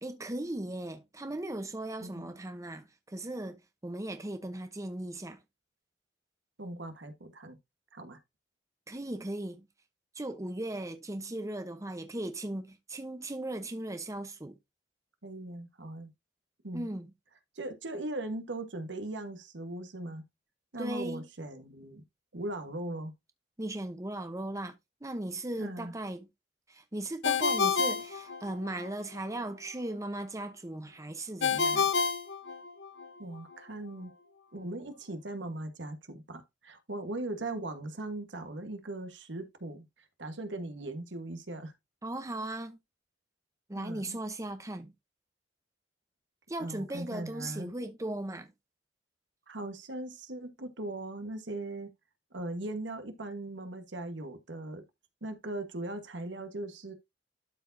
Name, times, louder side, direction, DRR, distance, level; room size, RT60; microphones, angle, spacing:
voice 1, 0.0-5.4 8.9-9.7 10.1-14.6 16.7-17.1 20.8-21.3 23.6-26.3 26.7-31.9 42.0-42.8 43.7-44.9 46.5-48.5, right 1 dB, 20° right, 0.8 m, -38 dB
voice 2, 2.0-2.3 6.6-7.6 7.9-8.2 15.2-16.1 16.6-16.9 17.5-20.2 20.7-22.0 22.3-23.1 25.6-25.9 33.2-34.1 34.5-39.8 40.2-41.7 43.7-44.2 46.6-47.7 49.5-51.9 52.3-54.8 55.2-56.9, right 2 dB, 85° right, 1.4 m, -39 dB
Ringtone, 27.2-28.9 31.4-33.1, left 5 dB, 70° left, 0.9 m, -29 dB
12.0 x 4.6 x 2.7 m
head